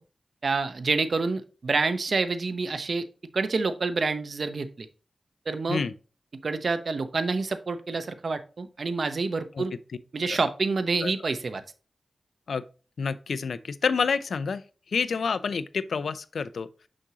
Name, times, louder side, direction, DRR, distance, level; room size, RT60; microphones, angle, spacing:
voice 1, 0.4-3.1 3.3-4.9 5.5-5.8 6.4-9.7 10.1-11.6, right 4 dB, 65° right, 0.8 m, -27 dB
voice 2, 13.0-14.6 14.9-16.7, left 5 dB, 85° left, 0.5 m, -28 dB
6.2 x 6.2 x 2.8 m
cardioid pair, 60°, 0 cm